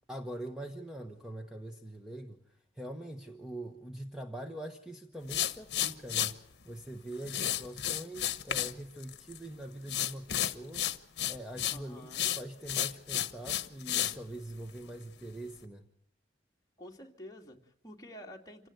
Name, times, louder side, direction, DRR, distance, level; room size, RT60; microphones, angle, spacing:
voice 1, 0.1-6.4 6.6-15.9, right 1 dB, 5° right, 4 dB, 1.2 m, -43 dB
sound 1, 5.3-6.3 7.2-8.7 9.0-9.5 9.9-11.8 12.1-14.2, left 11 dB, 60° left, 1.1 m, -32 dB
voice 2, 11.7-12.3 16.8-18.7, equal, 20° left, 0 dB, 2.5 m, -49 dB
27.0 x 17.5 x 7.9 m, 0.69 s
head